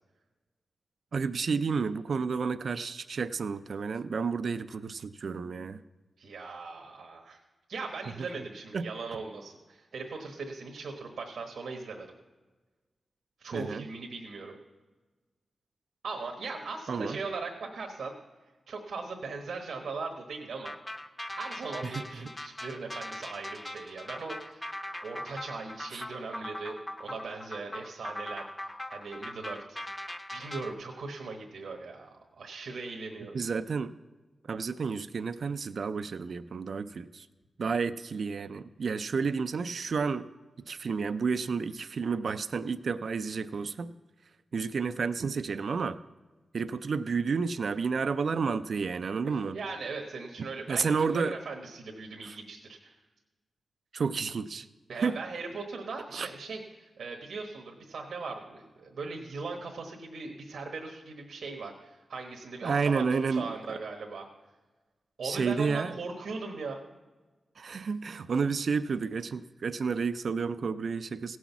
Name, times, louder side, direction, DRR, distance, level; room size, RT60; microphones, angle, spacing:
voice 1, 1.1-5.8 8.7-8.9 13.5-13.8 16.9-17.2 21.8-22.3 25.9-26.0 33.3-33.9 34.5-37.3 37.6-40.3 40.7-43.9 44.5-46.0 46.5-49.6 50.7-51.4 52.2-52.4 53.9-54.7 55.0-55.2 56.1-56.3 62.6-63.8 65.2-65.9 67.6-71.4, right 5 dB, 65° right, 11 dB, 0.4 m, -31 dB
voice 2, 6.2-7.4 7.7-12.1 13.4-14.5 16.0-18.1 18.7-20.7 21.3-24.7 25.0-29.8 30.3-33.4 49.2-52.9 54.9-64.3 65.2-66.8, right 4 dB, 90° right, 1 dB, 1.2 m, -39 dB
sound 1, 20.6-30.7, left 1 dB, 20° left, 0.8 m, -40 dB
16.5 x 6.2 x 7.1 m, 1.3 s
cardioid pair, 75°, 0 cm